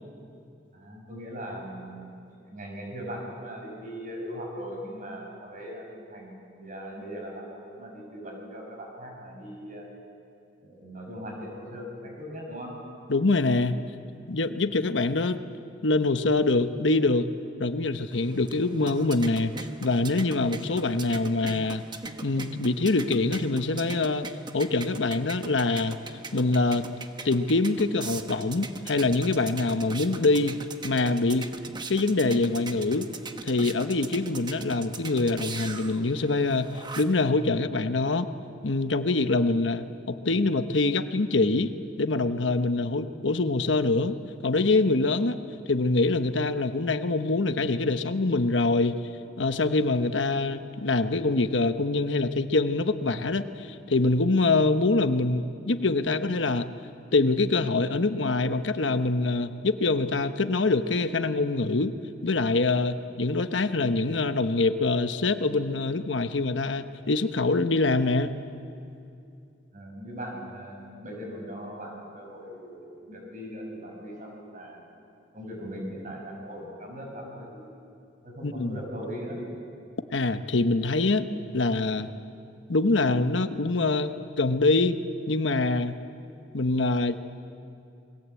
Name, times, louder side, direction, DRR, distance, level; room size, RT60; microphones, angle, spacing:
voice 1, 0.7-9.9 10.6-12.7 69.7-72.8 73.1-74.8 75.3-77.7 78.2-79.4, equal, 45° right, 0 dB, 7.3 m, -39 dB
voice 2, 13.1-13.8 14.3-15.4 15.8-17.3 17.6-19.5 19.8-21.8 22.2-24.3 24.5-26.0 26.3-26.8 27.2-30.6 30.8-31.5 31.9-33.1 33.4-38.3 38.6-41.7 42.0-44.2 44.4-45.4 45.7-49.0 49.4-56.7 57.1-61.9 62.2-68.3 78.4-78.8 80.1-81.3 81.5-82.1 82.7-84.9 85.3-86.0 86.5-87.2, left 3 dB, 85° left, 9 dB, 1.1 m, -24 dB
sound 1, 18.1-37.3, right 3 dB, 25° right, 1.1 m, -41 dB
28.0 x 22.0 x 8.4 m, 2.5 s
head